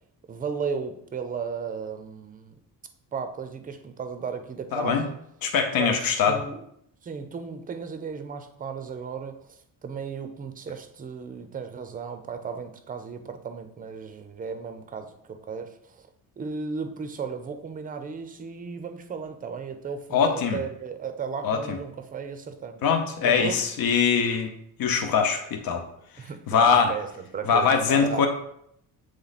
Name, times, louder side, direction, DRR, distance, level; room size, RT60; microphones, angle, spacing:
voice 1, 0.3-2.5 3.1-5.1 5.8-6.6 7.0-16.1 16.4-22.8 23.2-23.6 26.2-28.3, right 5 dB, 25° right, 8 dB, 0.5 m, -35 dB
voice 2, 4.7-5.0 5.4-6.4 20.1-20.6 21.4-21.8 22.8-24.5 24.8-25.8 26.5-26.9 27.5-28.3, left 6 dB, 70° left, 5 dB, 1.0 m, -22 dB
8.4 x 3.2 x 4.1 m, 0.72 s
cardioid pair, 180°, 36 cm